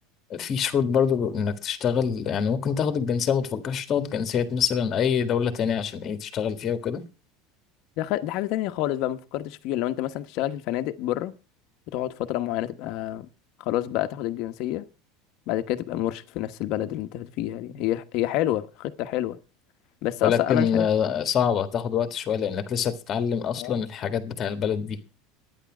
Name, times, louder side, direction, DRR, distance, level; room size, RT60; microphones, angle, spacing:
voice 1, 0.3-7.0 20.2-25.0, left 7 dB, 30° left, 1.6 m, -25 dB
voice 2, 8.0-11.3 11.9-13.3 13.6-14.9 15.5-19.4 20.0-20.9 23.6-23.8, left 14 dB, 50° left, 1.1 m, -28 dB
12.0 x 9.8 x 6.1 m
cardioid pair, 165°, 0 cm